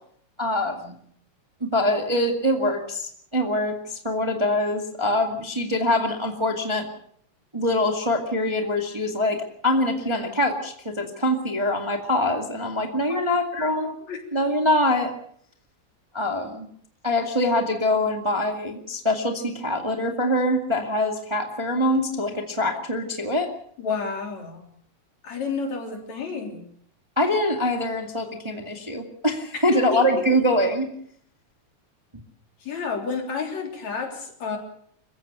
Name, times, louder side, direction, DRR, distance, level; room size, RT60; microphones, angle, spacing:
voice 1, 0.4-1.0 1.6-6.9 7.5-13.9 14.3-15.1 16.1-16.7 17.0-23.5 27.2-30.9, left 1 dB, 10° right, 3 dB, 1.7 m, -24 dB
voice 2, 13.1-14.2 23.8-24.6 25.2-26.6 29.5-30.2 32.6-34.6, left 5 dB, 65° left, 2 dB, 4.8 m, -31 dB
27.0 x 15.0 x 6.9 m, 0.65 s
omnidirectional pair, 3.4 m